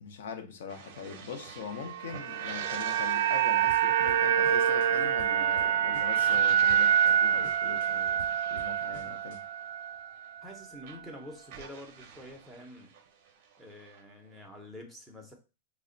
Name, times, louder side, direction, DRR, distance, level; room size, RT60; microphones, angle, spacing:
voice 1, 0.0-9.4, left 6 dB, 65° left, 0.7 m, -42 dB
sound 1, 0.7-10.5 10.8-14.7, right 6 dB, 40° right, 0.6 m, -48 dB
sound 2, 1.8-10.1 10.4-10.5, right 9 dB, 90° right, 0.4 m, -26 dB
sound 3, 3.7-4.9 5.2-6.4 6.7-7.1 7.4-9.4, left 2 dB, 50° left, 1.0 m, -50 dB
voice 2, 10.4-13.0 13.6-15.3, left 1 dB, ahead, 0.6 m, -47 dB
3.2 x 2.1 x 3.8 m
supercardioid pair, 170°, 0 cm